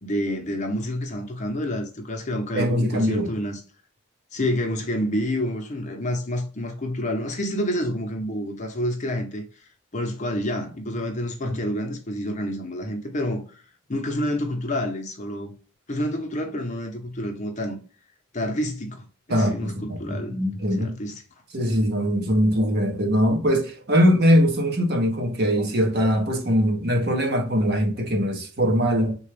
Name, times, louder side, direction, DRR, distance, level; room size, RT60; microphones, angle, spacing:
voice 1, 0.0-3.6 4.3-13.6 13.9-15.5 15.9-17.8 18.3-20.4 20.7-21.2, equal, 35° left, 0.7 m, -28 dB
voice 2, 2.5-3.3 11.4-11.6 19.3-20.9 21.5-29.2, equal, 50° right, 0.8 m, -22 dB
3.7 x 2.3 x 3.2 m
head